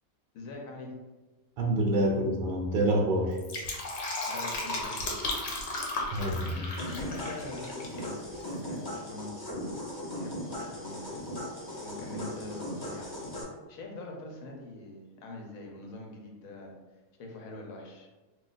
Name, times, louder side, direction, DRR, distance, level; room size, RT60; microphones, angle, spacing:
voice 1, 0.3-0.9 4.3-5.4 6.9-9.8 10.2-11.3 11.8-16.7 17.2-18.1, left 2 dB, 90° left, 0 dB, 1.1 m, -44 dB
voice 2, 1.6-3.4 6.1-6.7, right 1 dB, 65° right, -1 dB, 0.5 m, -27 dB
Fill (with liquid), 3.2-8.0 8.3-8.4, left 2 dB, 65° left, 0.9 m, -35 dB
sound 1, 6.8-13.4, equal, 35° left, 0.3 m, -38 dB
2.4 x 2.3 x 3.9 m, 1.2 s
omnidirectional pair, 1.4 m